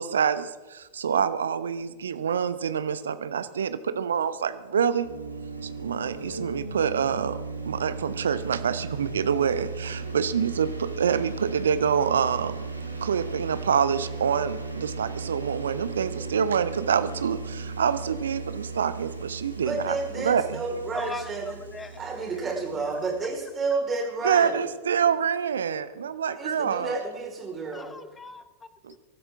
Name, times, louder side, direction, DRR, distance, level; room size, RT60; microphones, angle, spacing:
voice 1, 0.0-5.1 5.6-12.6 13.0-20.6 24.2-27.0 28.8-29.0, right 7 dB, 65° right, 13 dB, 0.9 m, -26 dB
sound 1, 5.0-23.3, right 4 dB, 85° right, 2.1 m, -36 dB
voice 2, 19.6-21.6 22.0-24.6 26.4-27.9, right 3 dB, 20° right, 0 dB, 4.7 m, -30 dB
voice 3, 20.9-22.0 22.4-22.5 22.8-23.0 27.7-29.0, left 4 dB, 15° left, 13 dB, 1.0 m, -41 dB
23.5 x 13.0 x 3.7 m, 1.2 s
figure-of-eight pair, 90°, 0 cm